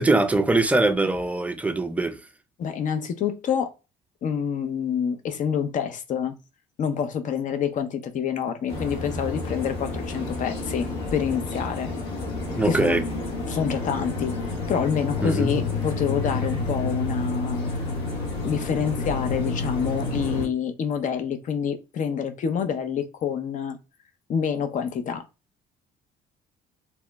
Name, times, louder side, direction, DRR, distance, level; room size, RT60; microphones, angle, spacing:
voice 1, 0.0-2.2 12.6-13.0 15.2-15.5, right 2 dB, 10° right, 0.4 m, -22 dB
voice 2, 2.6-3.7 4.2-6.4 6.8-11.9 12.6-13.0 13.5-14.4 14.7-17.8 18.4-23.8 24.3-25.2, left 7 dB, 50° left, 0.6 m, -27 dB
sound 1, 8.7-20.5, left 3 dB, 80° left, 1.1 m, -30 dB
2.9 x 2.0 x 3.3 m
cardioid pair, 110°, 17 cm